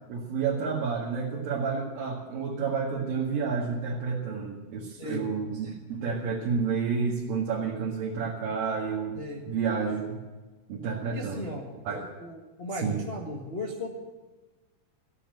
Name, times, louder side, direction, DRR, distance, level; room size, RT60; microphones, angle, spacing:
voice 1, 0.1-9.2 9.5-10.2 10.7-11.5 11.9-12.1 12.8-13.0, right 5 dB, 75° right, -5 dB, 3.5 m, -30 dB
voice 2, 9.1-9.5 11.1-11.7 12.2-14.1, left 1 dB, 35° left, -2 dB, 0.9 m, -36 dB
15.0 x 9.1 x 9.1 m, 1.2 s
omnidirectional pair, 4.1 m